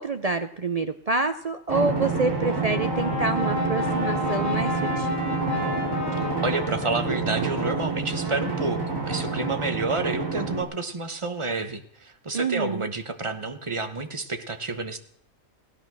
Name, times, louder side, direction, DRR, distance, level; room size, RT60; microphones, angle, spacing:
voice 1, 0.0-5.1 12.3-12.9, right 3 dB, 50° right, 9 dB, 0.4 m, -27 dB
Drum, 1.7-10.6, right 3 dB, 70° right, 3.4 m, -28 dB
Trumpet, 2.0-7.5 8.0-10.0, equal, 65° left, 3.6 m, -41 dB
Brass instrument, 2.5-6.9, left 3 dB, 30° left, 2.1 m, -31 dB
voice 2, 6.4-15.0, right 3 dB, 25° right, 8 dB, 1.0 m, -29 dB
16.0 x 10.5 x 6.2 m, 0.67 s
omnidirectional pair, 1.4 m